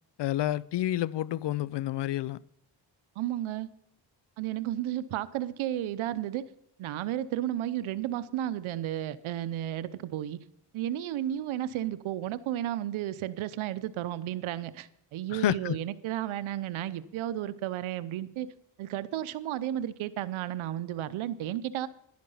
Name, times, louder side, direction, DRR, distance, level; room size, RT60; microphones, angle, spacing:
voice 1, 0.2-2.4 15.3-15.8, left 14 dB, 65° left, 0.5 m, -29 dB
voice 2, 3.2-3.7 4.4-6.5 6.8-10.4 10.7-18.5 18.8-21.9, right 12 dB, 90° right, 0.8 m, -33 dB
11.0 x 10.5 x 5.6 m
cardioid pair, 75°, 47 cm